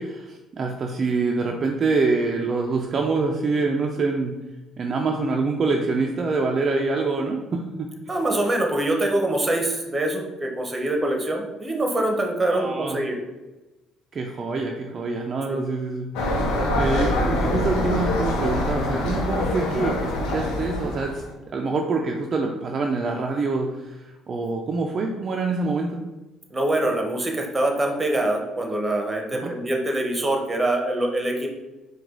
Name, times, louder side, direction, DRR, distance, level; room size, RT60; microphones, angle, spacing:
voice 1, 0.0-4.4 4.8-7.9 12.5-13.0 14.1-16.4 16.8-21.2 21.5-26.0 29.3-29.5, right 3 dB, 45° right, 1 dB, 0.4 m, -25 dB
voice 2, 8.1-13.2 15.5-15.6 26.5-31.5, right 1 dB, 20° right, 2 dB, 0.8 m, -24 dB
sound 1, 16.1-21.3, left 1 dB, 90° left, 0.7 m, -24 dB
4.7 x 2.3 x 3.7 m, 1.1 s
supercardioid pair, 85°, 0 cm